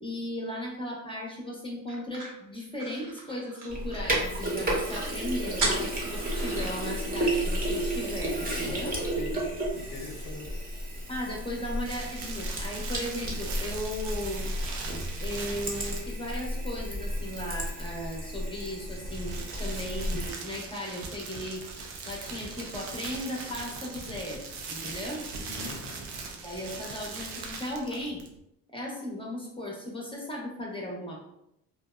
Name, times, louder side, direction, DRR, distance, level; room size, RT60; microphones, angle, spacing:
voice 1, 0.0-9.0 11.1-14.5 15.2-21.6 22.1-25.3 26.4-28.2 28.7-31.2, left 1 dB, 15° left, 0.8 m, -36 dB
sound 1, 1.9-4.3 4.6-4.7 4.9-5.1 5.6-6.9, right 2 dB, 55° right, 0.8 m, -35 dB
Sink (filling or washing), 3.7-20.3, right 1 dB, 25° right, 0.8 m, -32 dB
voice 2, 8.6-10.7 25.4-25.9, left 4 dB, 65° left, 0.6 m, -42 dB
sound 2, 11.8-16.3 18.8-28.4, right 4 dB, 90° right, 0.5 m, -40 dB
2.8 x 2.0 x 2.2 m
supercardioid pair, 70°, 37 cm